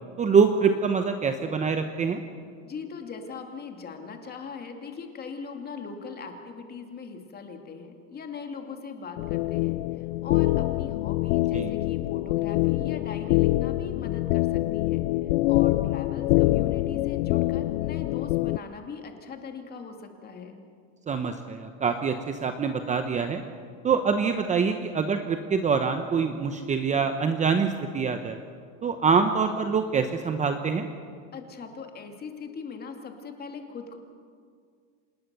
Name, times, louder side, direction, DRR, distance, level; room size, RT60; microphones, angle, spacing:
voice 1, 0.2-2.2 11.5-11.7 21.1-23.4 23.8-28.4 28.8-30.9, right 5 dB, 20° right, 7 dB, 0.9 m, -25 dB
voice 2, 2.6-15.0 15.5-20.6 31.3-34.0, left 5 dB, 25° left, 4 dB, 2.5 m, -40 dB
sound 1, 9.2-18.6, left 18 dB, 85° left, 0.5 m, -25 dB
26.5 x 20.0 x 6.9 m, 2.1 s
supercardioid pair, 150°, 39 cm